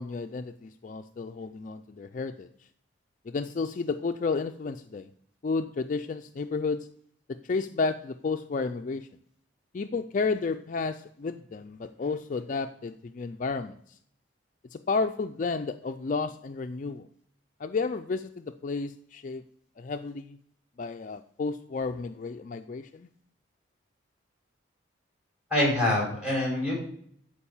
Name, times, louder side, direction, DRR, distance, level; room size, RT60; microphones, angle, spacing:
voice 1, 0.0-2.5 3.3-5.1 5.4-6.9 7.3-9.1 9.7-14.0 14.7-17.1 17.6-19.4 19.8-20.4 20.8-23.1, left 4 dB, 40° left, 7 dB, 0.3 m, -32 dB
voice 2, 25.5-26.7, left 1 dB, 5° right, -4 dB, 5.0 m, -25 dB
11.5 x 4.8 x 7.1 m, 0.65 s
head